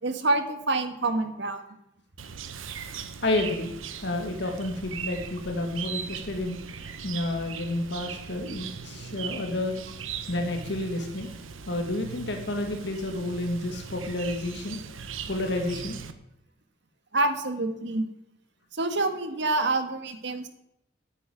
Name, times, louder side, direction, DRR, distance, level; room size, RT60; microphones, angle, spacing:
voice 1, 0.0-1.6 17.1-18.0 18.7-20.5, right 2 dB, 60° right, 8 dB, 1.6 m, -27 dB
Chirp tweet, 2.2-16.1, right 6 dB, 85° right, 1.1 m, -39 dB
voice 2, 3.2-3.7 4.0-6.6 7.0-9.8 10.3-11.3 11.7-15.0 15.3-16.0, left 1 dB, 60° left, 3 dB, 1.8 m, -30 dB
9.2 x 9.1 x 9.4 m, 0.82 s
head